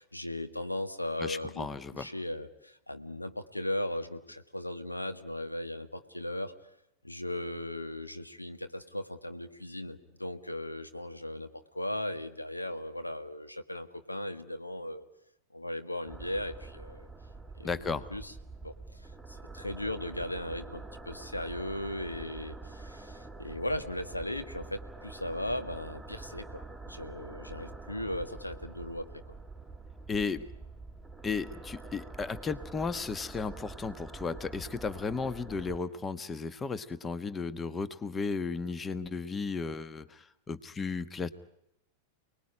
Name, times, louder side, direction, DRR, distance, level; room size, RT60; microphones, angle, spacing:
voice 1, 0.0-1.7 2.0-6.5 7.0-15.0 15.5-17.1 17.6-18.3 18.6-29.1, left 1 dB, 85° left, 8 dB, 1.8 m, -37 dB
voice 2, 1.2-2.1 17.6-18.1 30.1-30.5 31.2-41.3, left 4 dB, 20° left, 15 dB, 1.3 m, -34 dB
sound 1, 16.1-35.8, right 3 dB, ahead, 2.0 m, -46 dB
29.5 x 20.5 x 9.9 m, 0.85 s
figure-of-eight pair, 90°, 0 cm